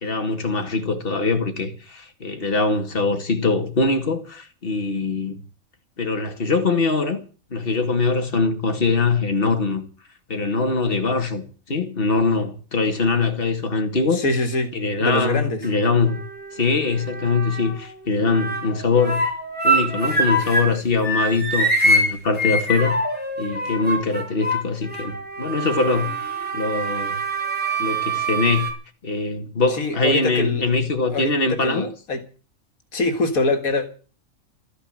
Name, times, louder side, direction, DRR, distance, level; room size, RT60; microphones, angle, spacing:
voice 1, 0.0-5.4 6.0-7.2 7.5-9.8 10.3-14.2 14.7-16.2 16.5-19.3 19.6-23.0 23.4-26.2 26.5-27.2 27.8-28.7 29.0-31.9, left 3 dB, 40° left, 2.4 m, -22 dB
voice 2, 14.1-14.7 15.0-15.6 29.7-30.6 31.0-32.2 32.9-33.9, left 2 dB, 80° left, 2.3 m, -24 dB
sound 1, 15.1-15.7 16.1-17.9 18.2-20.8 21.0-28.7, right 1 dB, 5° right, 4.4 m, -25 dB
13.5 x 9.9 x 9.0 m
omnidirectional pair, 1.4 m